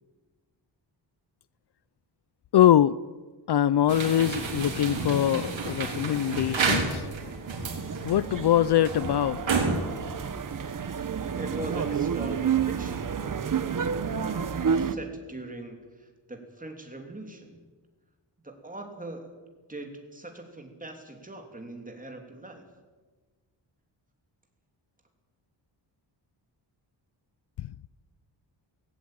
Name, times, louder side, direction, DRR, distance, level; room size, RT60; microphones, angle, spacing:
voice 1, 2.5-3.0 3.5-7.1 8.0-9.6 27.6-27.7, left 11 dB, 60° left, 19 dB, 0.5 m, -23 dB
sound 1, 3.9-11.1, right 4 dB, 85° right, 3.7 m, -31 dB
sound 2, 6.3-14.9, right 7 dB, 45° right, 1.0 m, -30 dB
voice 2, 11.4-13.1 13.5-17.6 18.4-19.3 19.7-22.6, right 2 dB, 20° right, 4 dB, 3.1 m, -41 dB
17.5 x 16.0 x 9.1 m, 1.3 s
wide cardioid pair, 155°, 45 cm